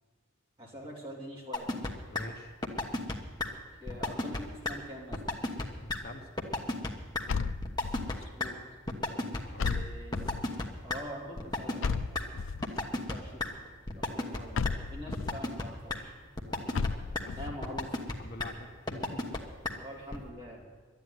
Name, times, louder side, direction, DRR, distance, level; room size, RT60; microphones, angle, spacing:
voice 1, 0.6-1.7 3.8-5.2 8.1-8.6 9.6-10.5 10.8-12.0 12.9-13.7 13.9-16.1 17.4-17.9 19.8-20.6, equal, 25° right, -4 dB, 3.2 m, -44 dB
sound 1, 1.5-1.9 2.2-2.3 2.6-3.1 3.4-3.5 3.9-4.4 4.7-4.8 5.1-5.6 5.9-6.0 6.4-6.9 7.1-7.2 7.6-8.2 8.4-8.5 8.9-9.7 10.1-11.0 11.4-12.2 12.6-13.1 13.4-13.5 13.9-14.4 14.7-14.8 15.1-15.6 15.9-16.0 16.4-16.9 17.2-17.3 17.6-18.1 18.4-18.5 18.9-19.4 19.7-19.8 20.1-20.2, left 2 dB, 20° left, 1.1 m, -31 dB
voice 2, 2.1-2.5 5.8-6.3 9.0-9.8 16.4-17.4 18.2-19.4, left 2 dB, 50° left, 3 dB, 1.2 m, -47 dB
sound 2, 7.3-8.2 9.6-10.6 11.8-12.8 14.5-15.4 16.7-17.6, left 5 dB, 65° left, 0.4 m, -33 dB
12.0 x 9.7 x 9.6 m, 1.4 s
head